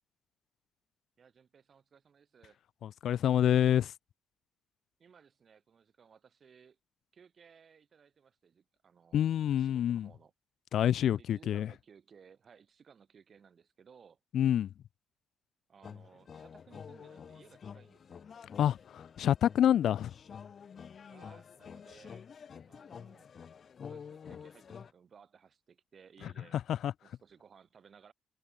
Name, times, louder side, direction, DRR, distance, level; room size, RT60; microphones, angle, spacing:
voice 1, 1.2-2.6 5.0-6.8 7.1-9.2 9.5-10.3 11.2-14.2 15.7-18.3 21.1-22.3 22.7-23.3 23.8-26.6 27.0-28.1, right 6 dB, 45° right, 8.0 m, -60 dB
voice 2, 2.8-3.9 9.1-10.1 10.7-11.7 14.3-14.7 18.6-20.1 26.8-26.9, left 10 dB, 70° left, 0.4 m, -27 dB
sound 1, 15.8-24.9, left 7 dB, 50° left, 0.9 m, -49 dB
cardioid pair, 90°, 0 cm